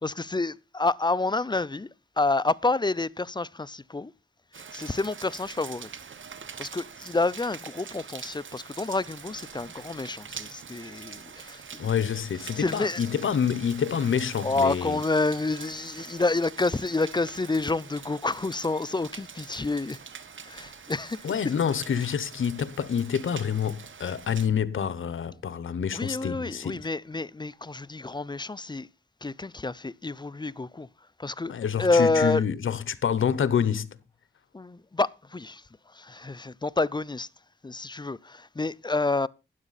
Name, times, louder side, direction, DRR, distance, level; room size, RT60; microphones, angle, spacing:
voice 1, 0.0-1.9 2.2-4.1 4.7-5.9 6.6-11.6 12.6-13.0 14.4-20.0 20.5-21.2 25.9-28.9 29.2-30.9 31.2-31.5 31.8-32.4 34.5-35.6 36.0-37.3 37.6-39.3, left 3 dB, 20° left, 0.5 m, -28 dB
Rain, 4.5-24.5, right 6 dB, 75° right, 1.1 m, -44 dB
voice 2, 11.8-15.0 21.2-26.9 31.5-34.0, left 7 dB, 90° left, 0.9 m, -27 dB
12.5 x 9.8 x 4.1 m
cardioid pair, 55°, 20 cm